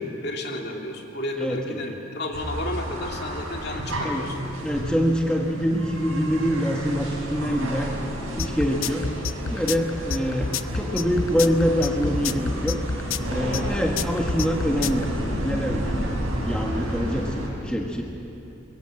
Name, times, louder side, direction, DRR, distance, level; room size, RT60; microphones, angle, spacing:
voice 1, 0.0-4.3, left 1 dB, 50° left, 1 dB, 2.6 m, -32 dB
voice 2, 1.4-2.0 4.0-4.3 4.6-7.9 8.4-9.1 9.5-12.8 13.3-15.1 15.4-16.1 16.4-18.0, equal, 5° left, 0 dB, 1.4 m, -25 dB
sound 1, 2.3-17.5, equal, 75° right, 6.1 m, -31 dB
sound 2, 8.4-15.0, left 5 dB, 85° left, 0.7 m, -28 dB
24.0 x 23.0 x 7.7 m, 2.8 s
head